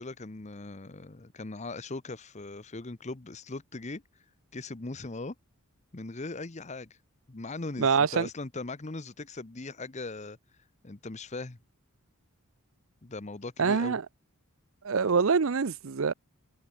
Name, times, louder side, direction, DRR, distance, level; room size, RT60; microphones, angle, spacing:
voice 1, 0.0-4.0 4.5-5.3 5.9-7.0 7.3-10.4 10.8-11.6 13.0-14.0, left 3 dB, 30° left, 0.9 m, -39 dB
voice 2, 7.8-8.3 13.6-14.0 14.8-16.1, right 5 dB, 60° right, 0.6 m, -25 dB
head